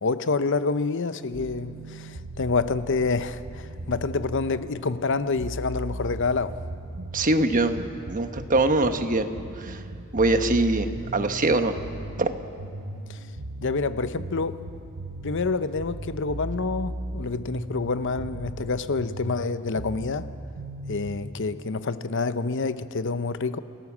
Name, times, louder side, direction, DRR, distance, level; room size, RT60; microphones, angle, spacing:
voice 1, 0.0-6.6 13.1-13.2 13.6-14.6 15.2-20.3 20.9-23.6, left 4 dB, 60° left, 0.8 m, -27 dB
sound 1, 1.3-21.3, right 1 dB, 85° right, 1.2 m, -37 dB
voice 2, 7.1-9.3 9.6-9.8 10.1-11.8 12.2-12.3, right 2 dB, 40° right, 1.2 m, -23 dB
29.0 x 17.5 x 7.3 m
head